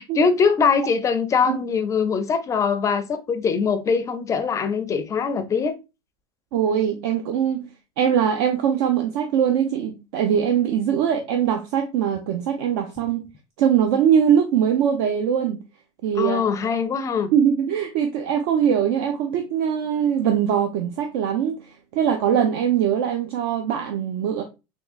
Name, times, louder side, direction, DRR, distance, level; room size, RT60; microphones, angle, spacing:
voice 1, 0.0-5.8 16.2-17.3, left 5 dB, 25° left, 0.4 m, -22 dB
voice 2, 6.5-7.7 8.0-13.2 13.6-15.6 16.0-16.4 17.3-24.4, right 8 dB, 75° right, 0.5 m, -22 dB
3.5 x 3.1 x 2.4 m
supercardioid pair, 135°, 13 cm